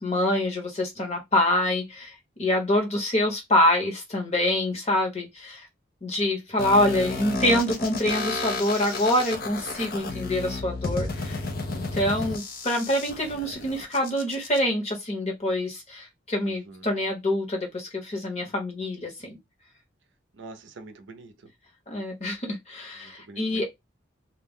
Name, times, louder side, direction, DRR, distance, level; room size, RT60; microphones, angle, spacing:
voice 1, 0.0-5.7 6.0-11.4 11.7-19.4 21.9-23.6, left 1 dB, 35° left, 1.0 m, -26 dB
sound 1, 6.6-14.6, left 3 dB, 50° left, 0.5 m, -32 dB
voice 2, 16.4-16.9 20.3-21.5 23.0-23.6, right 3 dB, 75° right, 0.5 m, -45 dB
2.4 x 2.0 x 3.5 m
head